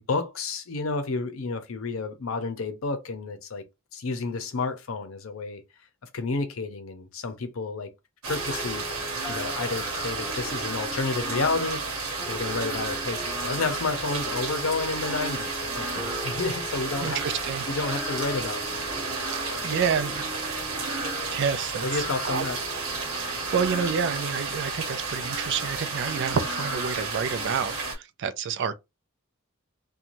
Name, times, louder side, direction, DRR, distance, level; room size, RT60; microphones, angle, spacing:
voice 1, 0.1-3.6 3.9-5.6 6.1-7.9 8.3-8.9 9.3-11.9 12.2-17.2 17.7-19.2 19.5-19.9 21.8-22.6, left 3 dB, 70° left, 0.7 m, -31 dB
sound 1, 8.2-28.0, right 3 dB, 75° right, 1.0 m, -32 dB
sound 2, 8.3-25.1, left 1 dB, 5° left, 0.4 m, -42 dB
voice 2, 17.0-17.7 19.3-20.2 21.3-22.4 23.2-28.7, right 6 dB, 60° right, 0.4 m, -29 dB
2.6 x 2.3 x 2.9 m
head